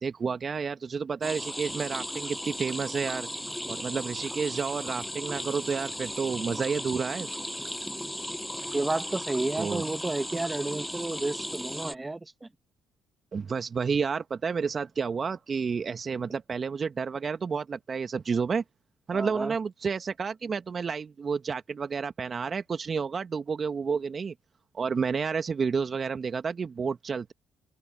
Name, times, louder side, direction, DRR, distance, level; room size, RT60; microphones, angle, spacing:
voice 1, 0.0-3.3 3.7-7.3 9.6-9.8 13.3-18.6 19.1-24.3 24.7-27.3, right 5 dB, 45° right, 1.5 m, -30 dB
sound 1, 1.2-12.0, left 1 dB, 5° left, 7.3 m, -36 dB
voice 2, 8.7-12.5 19.1-19.5, right 2 dB, 20° right, 1.9 m, -31 dB
open air
hypercardioid pair, 50°, 0 cm